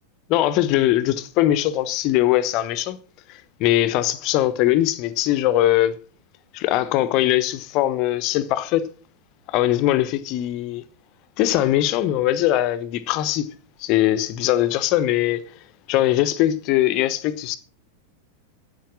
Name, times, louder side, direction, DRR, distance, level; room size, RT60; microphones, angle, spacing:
voice 1, 0.3-3.0 3.6-5.9 6.5-8.9 9.5-10.8 11.4-13.5 13.8-15.4 15.9-17.6, left 14 dB, 40° left, 1.0 m, -21 dB
10.5 x 8.3 x 6.2 m
figure-of-eight pair, 90°, 0 cm